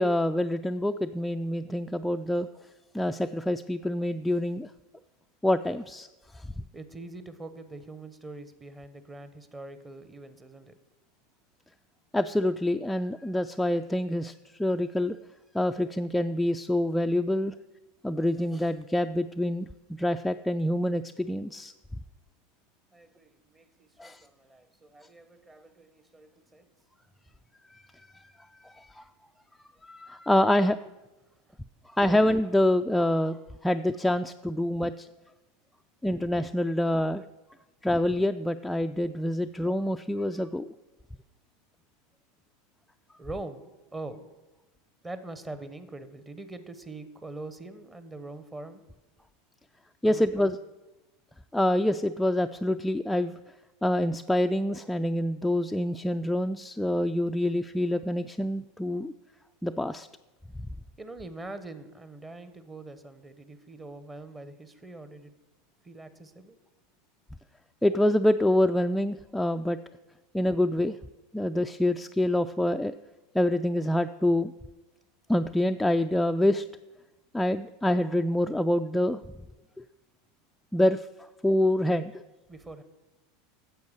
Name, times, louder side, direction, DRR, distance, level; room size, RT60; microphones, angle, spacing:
voice 1, 0.0-2.5 2.9-4.7 5.4-6.1 6.3-6.5 12.1-15.2 15.5-17.5 18.0-19.7 20.0-21.7 24.0-24.2 27.7-28.2 28.6-29.0 29.8-30.8 31.9-35.1 36.0-37.2 37.8-40.7 50.0-50.6 51.5-53.3 53.8-59.1 59.6-60.1 67.8-69.8 70.3-71.0 71.3-72.9 73.3-74.5 75.3-76.7 77.3-79.2 80.7-82.2, left 1 dB, 5° left, 7 dB, 0.3 m, -26 dB
voice 2, 6.7-10.8 22.9-26.7 31.5-31.6 43.2-43.6 43.9-44.3 45.0-48.8 50.0-50.6 61.0-65.3 65.8-66.6 82.5-82.8, right 2 dB, 15° right, 11 dB, 1.0 m, -43 dB
9.4 x 7.3 x 6.4 m, 1.1 s
hypercardioid pair, 95°, 0 cm